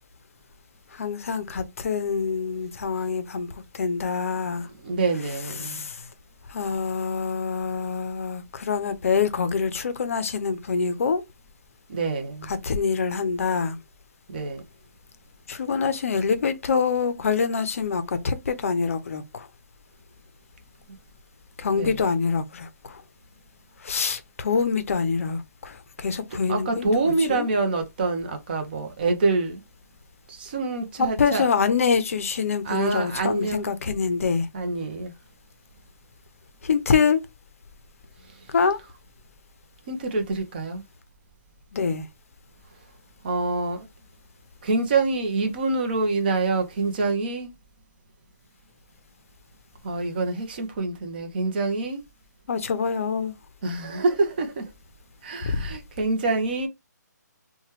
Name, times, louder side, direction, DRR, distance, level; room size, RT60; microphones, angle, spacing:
voice 1, 1.0-3.5 3.7-4.7 5.6-5.9 6.5-11.2 12.5-13.8 15.5-19.5 21.6-22.7 23.8-27.5 31.0-34.5 36.6-37.2 38.5-38.8 41.7-42.0 52.5-53.3 55.4-55.6, left 5 dB, 50° left, 0.5 m, -25 dB
voice 2, 4.6-5.9 11.9-12.5 14.3-14.6 21.7-22.0 26.3-29.6 30.3-31.5 32.6-33.7 34.5-35.1 39.9-40.8 43.2-43.9 44.6-47.5 49.8-52.0 53.6-54.7 55.2-56.7, right 3 dB, 30° right, 0.6 m, -26 dB
3.0 x 2.2 x 3.0 m
hypercardioid pair, 165°, 10 cm